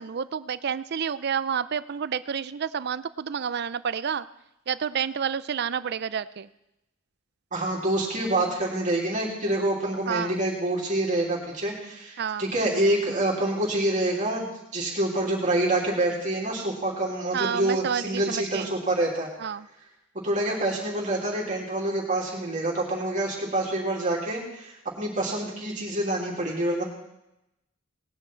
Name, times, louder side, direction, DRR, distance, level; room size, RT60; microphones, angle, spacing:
voice 1, 0.0-4.3 4.7-6.5 10.1-10.4 12.2-12.5 17.3-18.7 19.4-19.7, right 7 dB, 55° right, 16 dB, 0.5 m, -29 dB
voice 2, 7.5-19.3 20.1-26.8, right 1 dB, 40° right, -4 dB, 3.0 m, -27 dB
19.0 x 9.6 x 4.5 m, 0.88 s
head